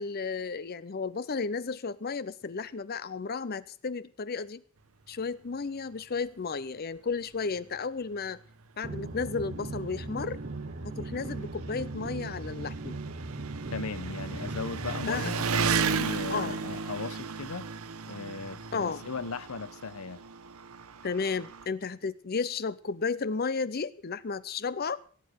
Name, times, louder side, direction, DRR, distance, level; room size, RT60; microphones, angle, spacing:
voice 1, 0.0-4.6 5.1-8.4 8.8-10.4 10.8-13.0 15.1-15.3 16.3-16.6 18.7-19.0 21.0-25.0, left 5 dB, 45° left, 0.6 m, -33 dB
Engine, 7.1-7.2 7.6-7.7 8.6-8.7 8.9-21.7, right 5 dB, 80° right, 0.9 m, -35 dB
sound 1, 8.8-15.3, right 2 dB, 45° right, 0.9 m, -38 dB
voice 2, 13.7-17.7 18.1-20.2, left 4 dB, 80° left, 0.8 m, -37 dB
17.0 x 8.6 x 6.4 m
head